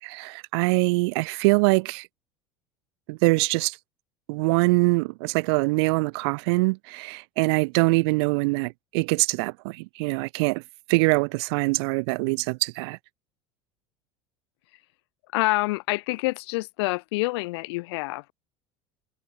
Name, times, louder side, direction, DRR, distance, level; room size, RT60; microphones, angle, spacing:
voice 1, 0.0-2.1 3.1-3.8 4.3-10.6 10.9-13.0, right 28 dB, 65° right, 6.2 m, -23 dB
voice 2, 15.3-18.3, left 23 dB, 65° left, 2.4 m, -27 dB
hypercardioid pair, 75°, 15 cm